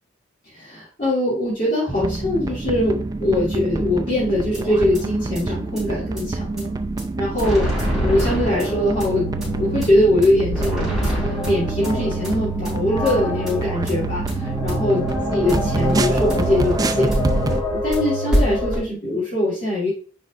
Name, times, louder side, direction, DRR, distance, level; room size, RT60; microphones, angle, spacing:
voice 1, 0.4-6.7 7.2-9.3 9.6-10.9 11.4-15.0 15.3-17.1 17.6-19.9, left 1 dB, 40° left, -9 dB, 2.5 m, -22 dB
sound 1, 1.9-17.6, right 2 dB, 20° right, 0.3 m, -26 dB
sound 2, 4.3-18.8, equal, ahead, 3.6 m, -26 dB
9.8 x 4.2 x 2.4 m, 0.40 s
head